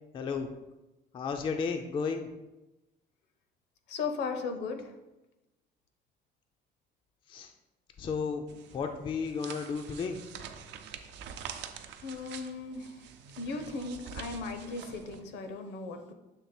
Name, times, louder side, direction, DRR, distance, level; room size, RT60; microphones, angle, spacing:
voice 1, 0.1-0.5 1.1-2.3 7.3-7.5 8.0-8.5 8.7-10.2, left 5 dB, 30° left, 5 dB, 0.3 m, -33 dB
voice 2, 3.9-4.9 12.0-13.0 13.4-16.1, left 4 dB, 75° left, 7 dB, 0.8 m, -37 dB
sound 1, 8.5-15.2, right 8 dB, 70° right, 0.6 m, -46 dB
7.1 x 3.3 x 4.2 m, 1.0 s
cardioid pair, 170°, 18 cm